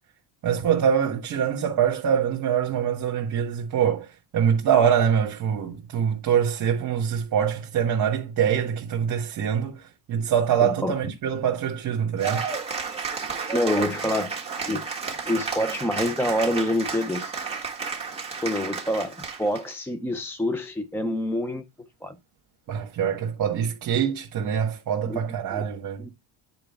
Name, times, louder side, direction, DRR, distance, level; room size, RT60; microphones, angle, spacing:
voice 1, 0.4-4.1 4.3-9.8 10.1-12.5 22.7-26.1, right 8 dB, 45° right, 1.5 m, -24 dB
voice 2, 10.6-10.9 13.5-14.3 14.7-14.8 15.3-17.3 18.4-21.6 22.0-22.2 25.1-25.2 25.5-25.7 26.0-26.1, left 1 dB, 5° left, 0.4 m, -26 dB
Cheering / Applause, 12.2-19.7, right 5 dB, 15° right, 1.8 m, -32 dB
9.0 x 4.5 x 3.4 m
cardioid pair, 120°, 45 cm